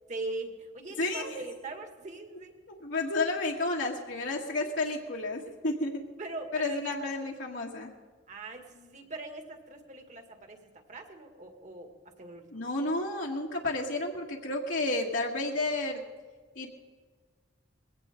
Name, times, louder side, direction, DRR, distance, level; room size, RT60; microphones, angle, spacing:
voice 1, 0.1-2.5 6.2-7.3 8.3-11.9 12.2-12.5, right 2 dB, 40° right, 4 dB, 2.2 m, -41 dB
voice 2, 1.0-1.4 2.7-6.0 6.5-7.9 12.5-16.0 16.5-16.7, left 2 dB, 70° left, -2 dB, 1.7 m, -31 dB
21.5 x 17.0 x 3.8 m, 1.5 s
head